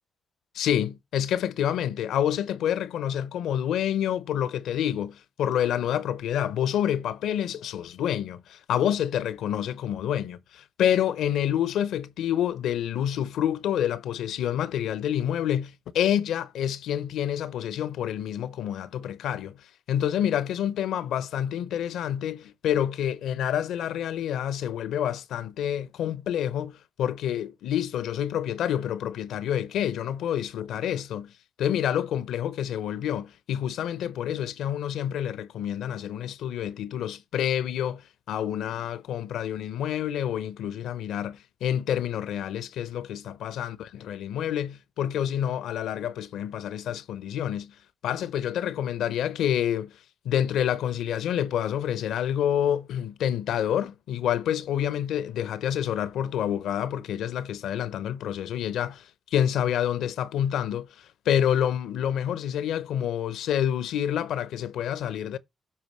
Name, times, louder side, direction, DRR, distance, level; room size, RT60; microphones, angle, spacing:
voice 1, 0.5-31.3 31.6-47.7 48.0-49.9 50.2-65.4, left 10 dB, 85° left, 0.6 m, -28 dB
13.0 x 4.5 x 3.1 m
supercardioid pair, 45°, 0 cm